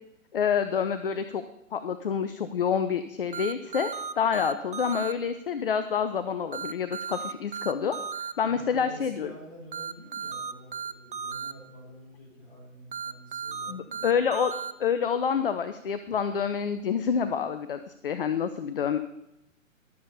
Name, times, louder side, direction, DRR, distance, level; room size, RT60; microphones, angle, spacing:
voice 1, 0.3-1.4 1.7-9.3 13.7-14.5 14.8-19.0, left 7 dB, 45° left, 10 dB, 0.6 m, -28 dB
sound 1, 3.3-5.1 6.5-8.3 9.7-11.5 12.9-14.7, right 6 dB, 40° right, 0.5 m, -35 dB
voice 2, 8.4-14.2, equal, 20° left, -3 dB, 4.3 m, -48 dB
12.0 x 7.1 x 5.5 m, 0.86 s
figure-of-eight pair, 130°, 40 cm